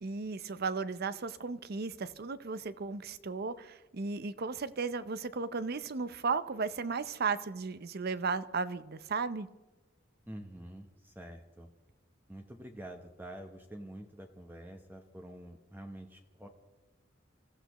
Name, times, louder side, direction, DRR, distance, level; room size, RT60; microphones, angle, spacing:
voice 1, 0.0-9.5, right 4 dB, 55° right, 14 dB, 0.6 m, -35 dB
voice 2, 10.3-11.7 12.3-16.5, right 1 dB, 10° right, 3 dB, 0.9 m, -47 dB
26.5 x 14.5 x 3.1 m, 1.1 s
head